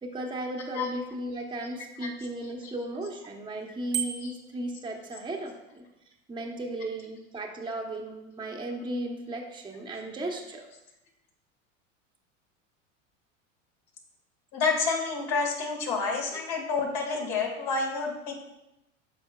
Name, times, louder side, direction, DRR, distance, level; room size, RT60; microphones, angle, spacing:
voice 1, 0.0-5.8 6.3-10.7, right 1 dB, 10° right, 0 dB, 1.0 m, -35 dB
Bicycle bell, 3.9-4.6, right 9 dB, 90° right, 1.0 m, -32 dB
voice 2, 14.5-18.4, left 4 dB, 60° left, 1 dB, 2.2 m, -29 dB
12.0 x 4.8 x 2.4 m, 0.90 s
hypercardioid pair, 85°, 39 cm